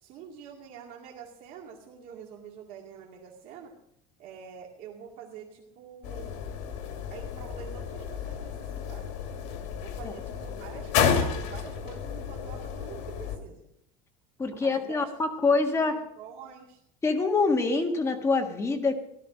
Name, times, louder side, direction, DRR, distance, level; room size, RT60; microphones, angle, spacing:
voice 1, 0.0-3.7 4.2-6.4 7.1-9.3 9.8-13.6 14.6-15.1 15.7-16.8, right 7 dB, 60° right, -1 dB, 2.3 m, -46 dB
sound 1, 6.0-13.4, left 7 dB, 75° left, 2.6 m, -31 dB
voice 2, 14.4-16.0 17.0-18.9, left 3 dB, 15° left, 2 dB, 1.8 m, -25 dB
17.0 x 13.0 x 5.1 m, 0.78 s
cardioid pair, 155°, 17 cm